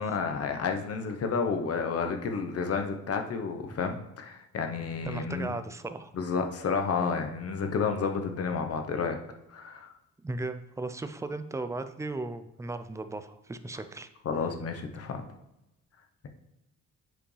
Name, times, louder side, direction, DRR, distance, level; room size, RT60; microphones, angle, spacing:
voice 1, 0.0-5.5 6.1-9.2 9.5-9.9 14.2-15.2, left 5 dB, 50° left, 5 dB, 1.0 m, -31 dB
voice 2, 5.0-6.1 10.2-14.1, right 2 dB, 10° right, 10 dB, 0.5 m, -36 dB
7.8 x 5.0 x 3.3 m, 0.91 s
cardioid pair, 90°, 30 cm